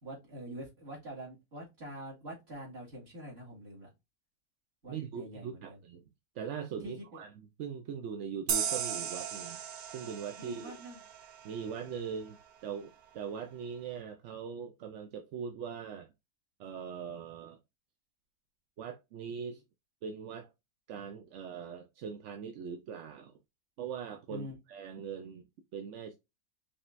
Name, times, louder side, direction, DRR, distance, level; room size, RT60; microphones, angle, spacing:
voice 1, 0.0-3.9 4.8-5.8 6.8-7.2 10.4-11.0 24.3-24.5, right 1 dB, 45° right, 2.4 m, -45 dB
voice 2, 4.9-6.0 6.4-9.6 9.9-10.7 11.4-12.4 12.6-16.1 16.6-17.6 18.8-19.6 20.0-20.5 20.9-23.3 23.8-25.5 25.7-26.1, right 7 dB, 65° right, 0.8 m, -41 dB
sound 1, 8.5-11.8, right 8 dB, 80° right, 1.2 m, -36 dB
5.1 x 3.5 x 2.5 m
omnidirectional pair, 1.6 m